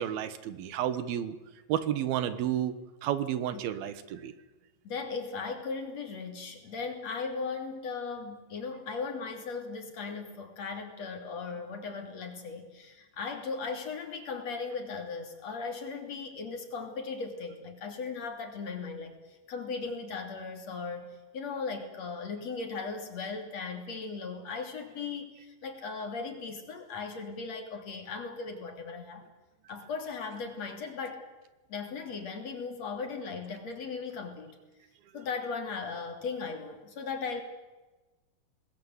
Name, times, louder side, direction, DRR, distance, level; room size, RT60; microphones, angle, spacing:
voice 1, 0.0-1.4 1.7-2.7 3.0-4.3, right 11 dB, 80° right, 12 dB, 3.2 m, -31 dB
voice 2, 4.8-21.1 21.3-29.2 29.7-31.3 31.7-34.6 35.1-37.4, left 4 dB, 45° left, 4 dB, 3.9 m, -37 dB
25.5 x 20.0 x 8.0 m, 1.2 s
omnidirectional pair, 4.2 m